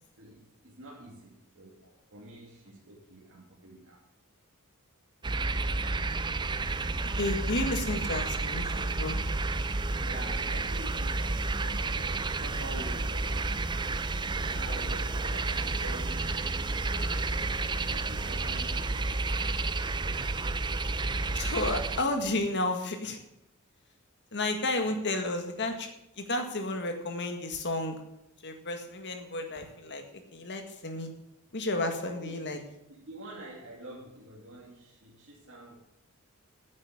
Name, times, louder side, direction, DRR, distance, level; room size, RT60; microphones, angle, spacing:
voice 1, 0.2-1.8 2.1-4.0 10.0-14.0 14.4-17.6 17.9-20.7 32.0-32.4 32.9-35.7, right 1 dB, 60° right, -5 dB, 2.7 m, -47 dB
sound 1, 5.2-22.0, right 3 dB, 20° right, 0.5 m, -31 dB
voice 2, 7.0-9.3 21.3-23.2 24.3-25.9 26.2-28.0 28.4-31.1 31.5-32.6, left 2 dB, 55° left, 5 dB, 1.8 m, -32 dB
9.8 x 8.2 x 8.6 m, 0.86 s
head